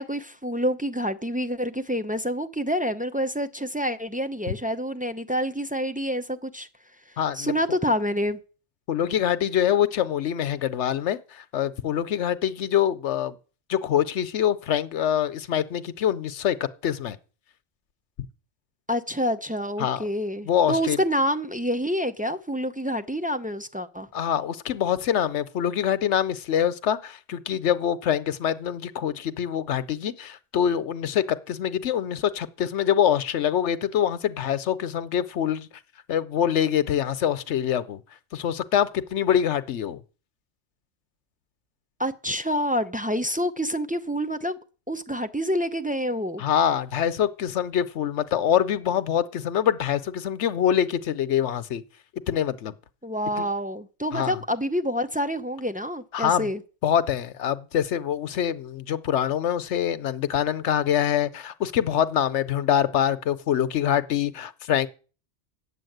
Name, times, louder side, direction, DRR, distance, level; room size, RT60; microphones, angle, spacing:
voice 1, 0.0-6.7 7.3-8.4 18.9-24.1 42.0-44.6 44.9-46.4 53.0-56.6, equal, 10° right, 0.5 m, -27 dB
voice 2, 7.2-7.5 8.9-13.3 13.7-16.6 16.8-17.2 19.8-20.0 20.4-21.0 24.1-35.7 36.1-38.0 38.3-40.0 46.4-51.8 52.3-52.7 53.4-53.5 54.1-54.4 56.1-56.5 56.8-64.9, left 9 dB, 80° left, 1.0 m, -25 dB
9.6 x 8.4 x 7.9 m
omnidirectional pair, 1.2 m